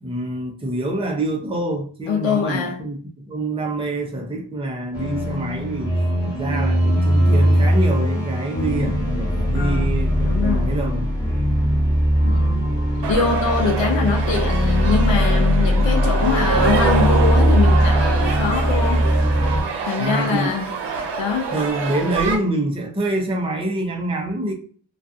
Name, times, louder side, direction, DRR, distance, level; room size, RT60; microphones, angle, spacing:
voice 1, 0.0-5.9 6.2-11.1 20.0-20.5 21.5-24.5, right 1 dB, 10° right, 0.6 m, -26 dB
voice 2, 2.1-2.8 9.5-9.9 10.3-10.8 12.2-12.7 13.1-19.1 19.9-20.7 21.2-21.5, left 5 dB, 75° left, 0.6 m, -23 dB
sound 1, 4.9-19.6, equal, 10° left, 1.2 m, -19 dB
sound 2, 13.0-22.4, right 5 dB, 65° right, 0.7 m, -26 dB
2.4 x 2.3 x 2.5 m
cardioid pair, 70°, 45 cm